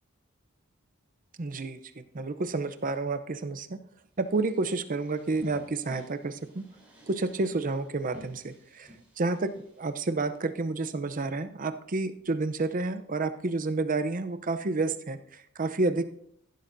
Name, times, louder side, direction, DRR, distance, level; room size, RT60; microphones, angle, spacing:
voice 1, 1.4-1.8 2.1-3.8 4.2-6.6 7.1-8.9 9.2-16.1, right 3 dB, 40° right, 10 dB, 0.6 m, -30 dB
sound 1, 4.2-10.4, equal, 5° right, 3.8 m, -53 dB
15.5 x 11.5 x 2.6 m, 0.69 s
head